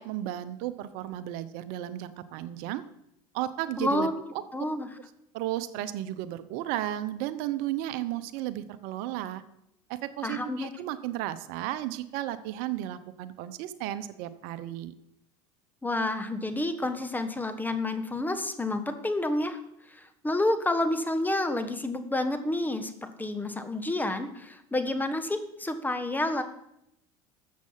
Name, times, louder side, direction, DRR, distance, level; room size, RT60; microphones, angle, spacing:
voice 1, 0.0-2.8 3.3-4.1 5.3-9.4 9.9-14.9, right 13 dB, 70° right, 13 dB, 0.8 m, -34 dB
voice 2, 3.8-4.1 4.5-4.9 10.2-10.7 15.8-19.6 20.0-26.4, left 1 dB, 10° left, 8 dB, 1.4 m, -29 dB
13.5 x 7.6 x 5.7 m, 0.80 s
hypercardioid pair, 90°, 16 cm